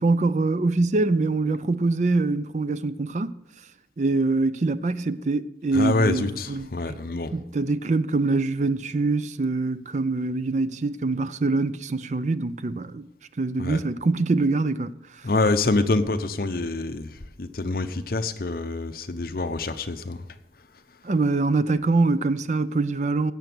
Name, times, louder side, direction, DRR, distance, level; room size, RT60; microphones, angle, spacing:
voice 1, 0.0-3.4 4.0-7.0 7.3-13.1 13.4-14.9 21.0-23.3, right 3 dB, 40° right, 0.5 m, -24 dB
voice 2, 5.7-7.3 13.6-13.8 15.2-17.1 17.4-20.2, left 2 dB, 55° left, 0.8 m, -26 dB
16.5 x 6.8 x 6.2 m
head